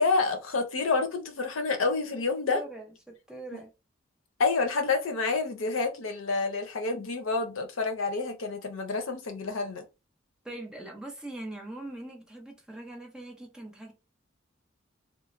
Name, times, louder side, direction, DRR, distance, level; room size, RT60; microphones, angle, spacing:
voice 1, 0.0-2.6 4.4-9.8, left 4 dB, 80° left, 0.6 m, -28 dB
voice 2, 2.2-3.7 10.4-13.9, right 1 dB, 5° right, 0.6 m, -42 dB
2.9 x 2.1 x 2.5 m
head